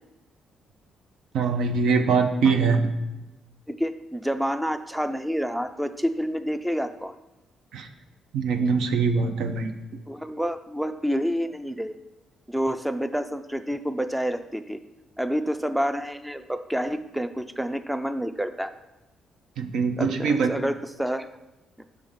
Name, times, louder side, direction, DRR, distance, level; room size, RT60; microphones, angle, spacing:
voice 1, 1.3-2.9 7.7-7.9 8.3-9.7 19.6-20.6, right 5 dB, 80° right, 6 dB, 0.6 m, -23 dB
voice 2, 3.7-7.2 10.1-12.0 12.5-14.8 15.2-18.7 20.0-21.3, equal, 5° right, 9 dB, 0.4 m, -28 dB
6.2 x 3.4 x 5.6 m, 1.0 s
cardioid pair, 90°, 0 cm